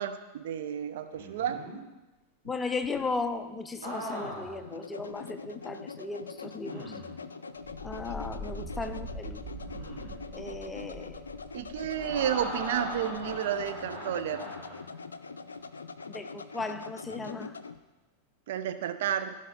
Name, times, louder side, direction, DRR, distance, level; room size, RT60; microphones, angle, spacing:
voice 1, 0.0-1.6 11.5-14.5 18.5-19.3, right 10 dB, 55° right, 9 dB, 0.6 m, -31 dB
sound 1, 1.1-1.8 3.8-4.6 5.2-5.3 6.6-7.2 9.5-10.2 11.9-14.9 17.1-17.4, equal, 70° right, 3.7 m, -40 dB
sound 2, 2.4-17.8, left 4 dB, 75° left, 0.4 m, -44 dB
voice 2, 2.4-6.9 7.8-9.6 10.3-11.2 16.1-17.6, left 3 dB, 15° left, 9 dB, 0.6 m, -36 dB
sound 3, 7.6-13.6, right 1 dB, 35° right, 2.2 m, -44 dB
15.5 x 5.3 x 3.9 m, 1.1 s
figure-of-eight pair, 90°, 0 cm